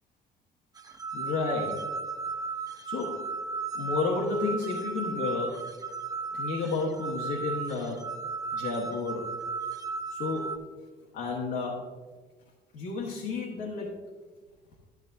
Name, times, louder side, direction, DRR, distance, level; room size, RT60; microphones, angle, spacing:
sound 1, 0.8-10.6, right 4 dB, 20° right, 0.6 m, -35 dB
voice 1, 1.1-1.8 2.8-3.2 3.7-5.7 6.3-8.0 8.5-9.4 10.1-10.5 11.1-11.8 12.7-13.9, left 3 dB, 85° left, -3 dB, 1.4 m, -31 dB
12.0 x 7.4 x 2.7 m, 1.4 s
cardioid pair, 110°, 17 cm